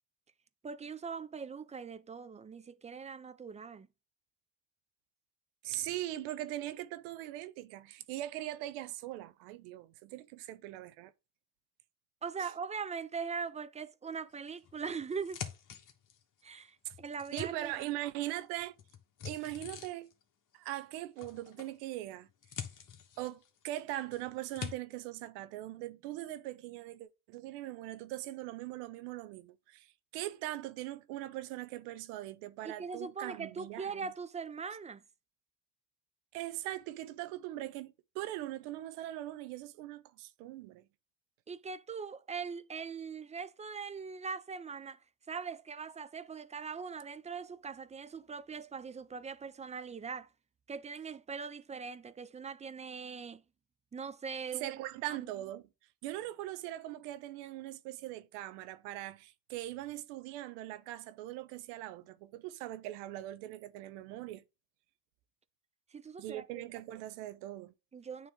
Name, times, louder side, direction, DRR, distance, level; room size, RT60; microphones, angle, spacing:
voice 1, 0.6-3.9 12.2-15.4 16.4-17.9 32.6-35.0 41.5-45.0 45.3-50.3 50.7-53.4 53.9-54.8 55.1-55.3 65.9-66.6 67.9-68.3, right 5 dB, 15° right, 0.4 m, -41 dB
voice 2, 5.6-11.1 12.4-12.5 16.8-16.9 17.3-18.8 19.2-20.1 20.5-22.3 23.2-29.9 30.1-34.1 36.3-40.9 54.5-55.6 56.0-64.4 66.2-67.7, right 15 dB, 80° right, 0.8 m, -41 dB
sound 1, 14.6-16.4 16.8-18.3 18.5-20.2 21.2-21.8 22.1-23.8 24.1-24.7, left 8 dB, 40° left, 1.4 m, -45 dB
9.2 x 3.3 x 3.7 m
supercardioid pair, 85°, 46 cm